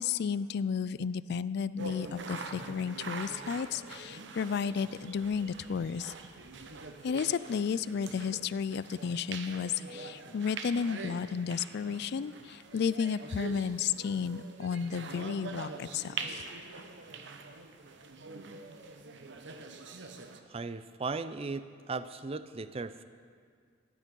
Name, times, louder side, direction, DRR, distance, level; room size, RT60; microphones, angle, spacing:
voice 1, 0.0-6.1 7.0-16.5, left 6 dB, 60° left, 17 dB, 0.3 m, -33 dB
sound 1, 1.8-20.4, right 4 dB, 65° right, 0.9 m, -44 dB
voice 2, 20.5-23.0, right 4 dB, 30° right, 13 dB, 0.5 m, -37 dB
15.0 x 10.5 x 5.4 m, 2.1 s
head